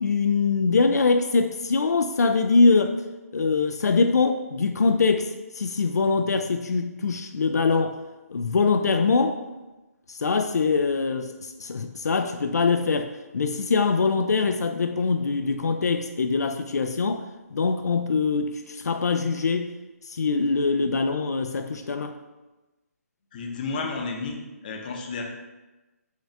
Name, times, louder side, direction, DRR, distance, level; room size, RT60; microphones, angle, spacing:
voice 1, 0.0-3.0 3.3-8.0 8.3-9.4 10.1-17.2 17.5-19.7 20.1-22.1, left 4 dB, 80° left, 7 dB, 0.4 m, -23 dB
voice 2, 23.3-24.4 24.6-25.2, left 4 dB, 30° left, 2 dB, 0.7 m, -31 dB
6.3 x 2.5 x 3.3 m, 1.1 s
hypercardioid pair, 160°, 9 cm